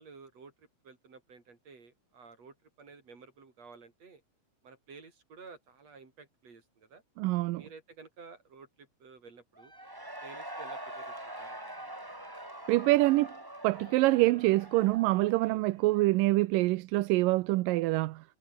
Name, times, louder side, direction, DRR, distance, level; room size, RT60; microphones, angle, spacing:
voice 1, 0.0-4.2 4.6-7.0 7.5-9.7 10.2-11.6 15.4-15.7, right 4 dB, 50° right, 6.0 m, -53 dB
voice 2, 7.2-7.6 12.7-13.3 13.6-18.2, right 19 dB, 85° right, 2.4 m, -25 dB
Cheering / Crowd, 9.6-16.3, right 1 dB, 5° right, 2.5 m, -44 dB
omnidirectional pair, 3.9 m